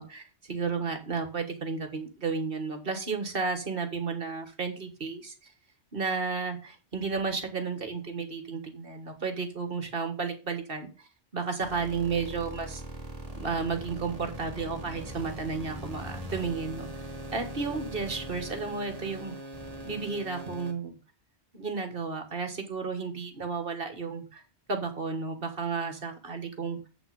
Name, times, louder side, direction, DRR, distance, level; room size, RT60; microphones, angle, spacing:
voice 1, 0.0-5.3 5.9-11.1 11.3-12.8 13.4-16.9 17.3-19.3 19.8-21.0 21.5-24.4 24.7-26.9, right 4 dB, 55° right, 7 dB, 1.6 m, -33 dB
sound 1, 11.6-20.7, right 1 dB, 35° right, 1.7 m, -41 dB
7.7 x 6.0 x 5.2 m, 0.34 s
omnidirectional pair, 1.1 m